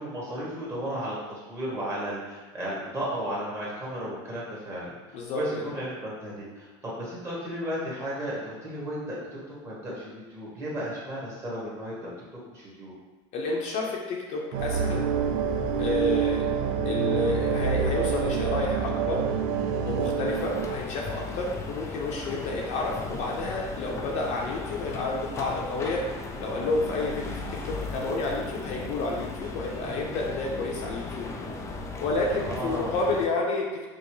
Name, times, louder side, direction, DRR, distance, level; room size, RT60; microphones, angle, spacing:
voice 1, 0.0-9.2 9.5-12.1 12.4-12.9 32.4-33.0, equal, 20° right, -7 dB, 1.4 m, -34 dB
voice 2, 5.1-5.8 13.3-15.1 15.8-16.5 16.8-19.3 19.9-31.3 32.0-33.9, left 2 dB, 50° left, -2 dB, 0.7 m, -30 dB
sound 1, 14.5-20.8, right 6 dB, 65° right, 0.5 m, -27 dB
sound 2, 20.2-33.3, left 3 dB, 20° left, 0.3 m, -36 dB
5.2 x 2.0 x 3.1 m, 1.2 s
supercardioid pair, 135°, 15 cm